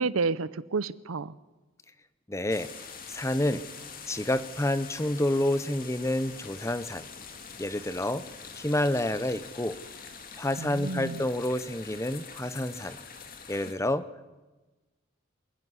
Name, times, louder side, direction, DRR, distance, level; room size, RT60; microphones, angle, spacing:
voice 1, 0.0-1.4 10.6-11.3, right 4 dB, 80° right, 18 dB, 0.7 m, -30 dB
voice 2, 2.3-2.7 3.1-3.6 4.1-7.1 7.6-8.2 8.5-9.8 10.4-13.0 13.5-14.1, left 1 dB, 15° left, 13 dB, 0.7 m, -29 dB
sound 1, 2.5-13.7, left 5 dB, 45° left, 2.0 m, -45 dB
27.0 x 10.5 x 9.7 m, 1.2 s
head